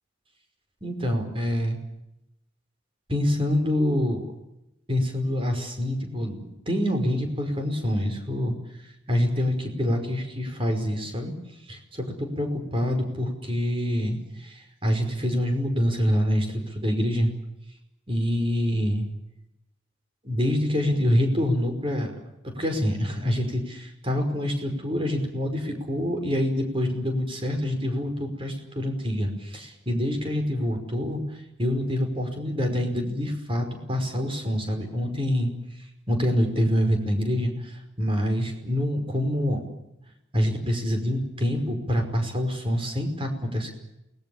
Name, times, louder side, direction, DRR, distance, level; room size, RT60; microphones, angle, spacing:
voice 1, 0.8-1.8 3.1-4.2 4.9-8.5 9.1-11.3 11.7-17.3 18.1-19.1 20.2-22.1 22.4-31.2 31.6-35.5 36.1-39.6 40.3-43.7, equal, 25° right, 4 dB, 5.3 m, -26 dB
29.0 x 20.0 x 7.2 m, 0.86 s
head